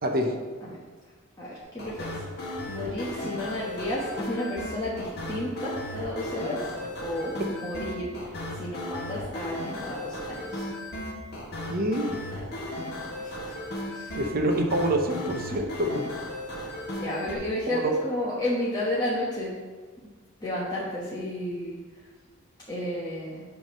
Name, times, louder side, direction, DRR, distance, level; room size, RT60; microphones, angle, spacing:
voice 1, 0.0-0.4 11.7-12.2 14.1-16.1 17.7-17.9, right 1 dB, 45° right, 3 dB, 0.8 m, -26 dB
voice 2, 1.4-2.2 2.7-6.7 7.0-7.4 7.6-8.1 8.5-10.7 13.2-13.5 13.9-14.2 16.9-19.6 20.4-21.8 22.7-23.4, left 1 dB, 20° left, -7 dB, 1.1 m, -32 dB
sound 1, 1.8-17.4, left 1 dB, 50° left, 1.6 m, -36 dB
9.2 x 3.5 x 5.5 m, 1.4 s
head